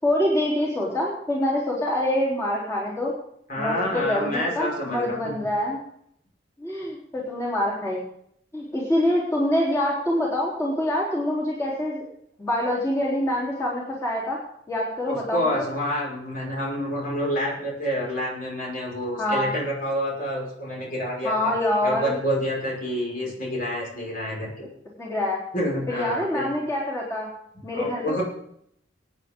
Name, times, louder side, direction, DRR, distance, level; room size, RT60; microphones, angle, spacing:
voice 1, 0.0-3.2 3.6-5.8 6.6-8.1 8.5-12.0 12.4-14.4 14.7-15.7 19.2-19.5 21.2-22.2 25.0-25.4 25.9-27.3 27.6-28.2, left 1 dB, 15° left, -6 dB, 3.7 m, -25 dB
voice 2, 3.5-5.3 15.1-21.5 21.8-24.7 25.5-26.5 27.7-28.2, equal, 50° left, -3 dB, 5.6 m, -28 dB
23.5 x 9.8 x 3.8 m, 0.71 s
head